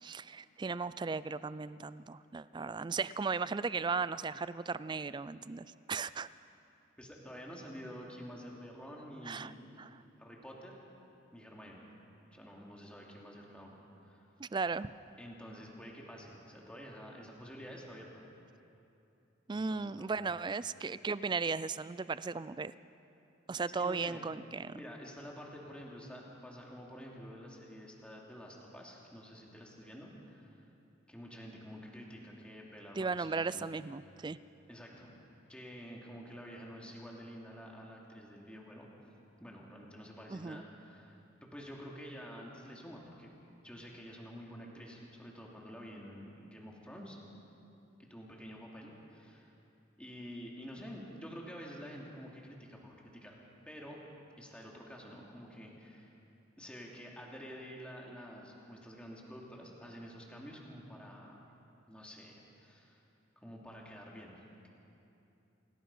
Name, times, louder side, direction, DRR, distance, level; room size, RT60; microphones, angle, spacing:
voice 1, 0.0-6.3 9.3-9.5 9.8-10.0 14.4-14.9 19.5-22.7 23.5-24.8 33.0-34.4 40.3-40.6, right 4 dB, 25° right, 16 dB, 0.3 m, -36 dB
voice 2, 7.0-9.9 10.2-10.7 11.3-11.8 12.3-13.7 14.0-14.3 15.2-18.2 19.5-20.3 23.8-24.2 24.7-30.7 31.1-33.7 34.7-35.1 35.5-38.9 39.4-41.1 41.4-43.3 43.6-47.2 48.0-49.5 50.0-53.4 53.7-54.0 54.4-56.2 56.6-61.4 61.9-62.3 62.6-63.0 63.4-64.4, equal, 5° left, -2 dB, 2.8 m, -49 dB
27.0 x 17.5 x 5.6 m, 2.8 s
head